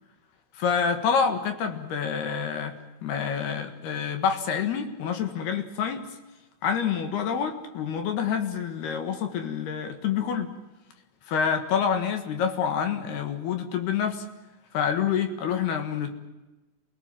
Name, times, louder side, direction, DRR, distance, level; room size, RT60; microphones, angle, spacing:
voice 1, 0.6-6.1 6.6-10.5 11.3-14.2 14.7-16.1, left 7 dB, 65° left, 7 dB, 3.5 m, -27 dB
28.5 x 18.5 x 7.6 m, 1.1 s
omnidirectional pair, 5.1 m